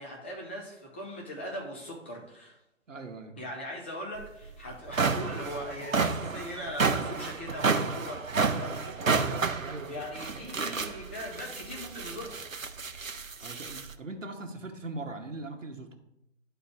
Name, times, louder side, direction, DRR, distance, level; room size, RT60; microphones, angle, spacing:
voice 1, 0.0-2.6 3.4-9.1 9.8-12.4, equal, 10° left, -3 dB, 0.5 m, -40 dB
voice 2, 2.9-3.4 9.6-10.0 10.3-10.5 13.4-15.9, right 2 dB, 70° right, 4 dB, 1.0 m, -40 dB
sound 1, 4.2-4.3 4.7-13.9, right 4 dB, 90° right, 0.6 m, -30 dB
11.0 x 3.9 x 3.5 m, 0.85 s
figure-of-eight pair, 135°, 39 cm